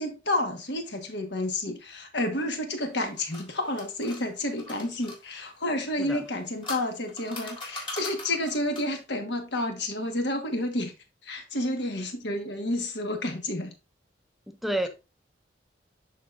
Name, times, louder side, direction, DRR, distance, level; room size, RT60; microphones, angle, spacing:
voice 1, 0.0-10.9 11.2-13.7, left 1 dB, 75° left, 1.4 m, -30 dB
sound 1, 2.9-5.2 6.2-9.0, left 1 dB, 25° left, 1.9 m, -41 dB
voice 2, 14.5-14.9, right 1 dB, ahead, 0.4 m, -29 dB
11.0 x 3.8 x 2.5 m
head